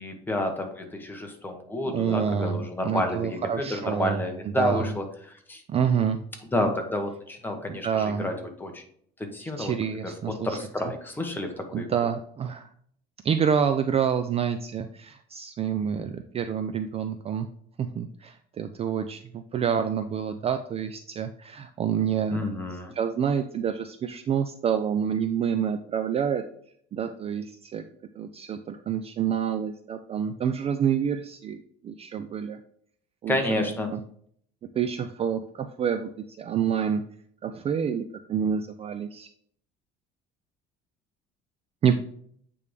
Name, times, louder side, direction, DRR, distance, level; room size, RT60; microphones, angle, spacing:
voice 1, 0.0-5.6 6.5-8.8 9.2-9.7 10.0-11.9 22.3-22.9 33.3-33.9, left 1 dB, 10° left, 3 dB, 1.1 m, -30 dB
voice 2, 1.9-4.2 4.6-4.9 5.7-6.2 7.7-8.3 9.6-10.6 11.7-12.7 13.2-17.5 17.8-22.4 22.9-26.4 26.9-27.8 28.2-32.6 33.2-34.0 34.8-36.1 36.4-37.0 37.4-38.0 38.3-39.3 41.8-42.0, right 7 dB, 30° right, 8 dB, 0.4 m, -28 dB
8.5 x 3.5 x 3.3 m, 0.63 s
cardioid pair, 130°, 19 cm